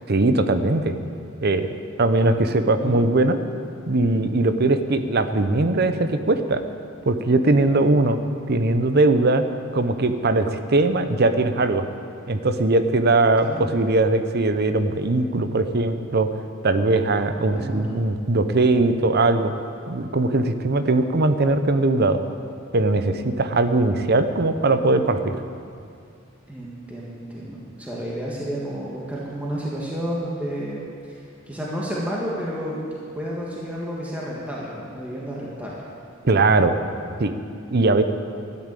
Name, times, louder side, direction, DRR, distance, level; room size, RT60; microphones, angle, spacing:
voice 1, 0.1-0.9 1.4-1.7 2.0-3.4 3.9-6.6 7.0-8.2 8.5-9.4 9.7-11.9 12.3-16.3 16.6-19.5 19.9-22.2 22.7-25.4 36.2-36.8 37.2-37.3 37.7-38.0, right 2 dB, 50° right, 10 dB, 0.8 m, -20 dB
voice 2, 13.4-13.7 17.4-17.8 26.5-30.8 31.1-32.8 33.1-35.8, equal, 5° right, -6 dB, 1.8 m, -31 dB
13.0 x 9.6 x 8.4 m, 2.4 s
head